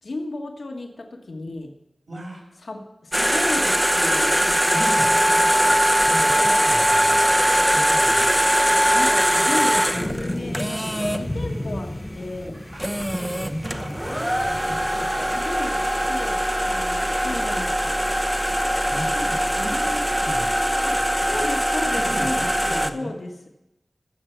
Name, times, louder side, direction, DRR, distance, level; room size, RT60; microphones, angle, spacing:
voice 1, 0.0-1.7 2.6-5.8 8.9-12.6 15.3-18.0 20.8-23.5, left 2 dB, 70° left, 2 dB, 1.4 m, -34 dB
voice 2, 2.1-2.4 4.7-5.1 6.0-8.5 12.7-12.8 13.1-15.4 18.9-20.5 21.3-21.4 21.9-23.1, equal, 65° right, -2 dB, 5.7 m, -36 dB
sound 1, 3.1-11.2 12.5-12.6 12.8-22.9, equal, 10° right, 0.8 m, -21 dB
sound 2, 8.7-15.8, left 1 dB, 25° left, 1.2 m, -34 dB
14.5 x 6.8 x 7.1 m, 0.92 s
wide cardioid pair, 70°, 0 cm